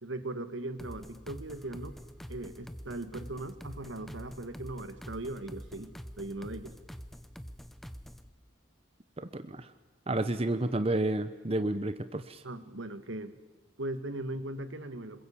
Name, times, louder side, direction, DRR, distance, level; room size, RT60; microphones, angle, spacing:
voice 1, 0.0-2.0 2.3-6.7 12.4-13.4 13.8-15.3, right 2 dB, 75° right, 12 dB, 1.7 m, -39 dB
sound 1, 0.8-8.3, equal, ahead, 0.8 m, -46 dB
voice 2, 9.2-9.7 10.1-12.4, right 2 dB, 30° right, 11 dB, 0.8 m, -31 dB
26.5 x 21.5 x 8.5 m, 1.2 s
head